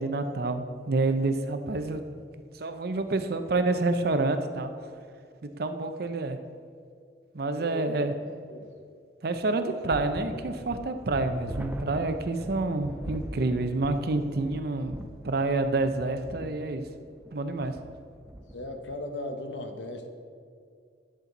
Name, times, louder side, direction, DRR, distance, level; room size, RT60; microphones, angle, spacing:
voice 1, 0.0-2.0 2.6-4.7 5.4-6.4 7.3-8.1 9.2-15.0 15.2-16.8 17.3-17.7, right 2 dB, 60° right, 8 dB, 0.6 m, -28 dB
voice 2, 7.6-7.9 8.2-8.7 12.4-12.6 18.5-20.1, left 1 dB, 90° left, 5 dB, 1.0 m, -38 dB
sound 1, 9.9-18.9, right 1 dB, 10° right, 0.4 m, -42 dB
11.0 x 7.6 x 4.0 m, 2.2 s
head